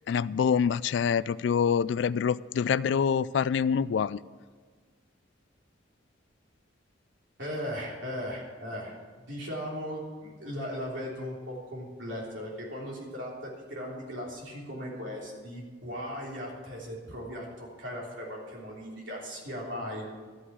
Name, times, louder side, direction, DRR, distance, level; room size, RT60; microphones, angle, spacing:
voice 1, 0.1-4.2, left 7 dB, 65° left, 18 dB, 0.3 m, -26 dB
voice 2, 7.4-20.0, equal, 70° right, -3 dB, 3.4 m, -38 dB
12.5 x 6.2 x 8.1 m, 1.5 s
head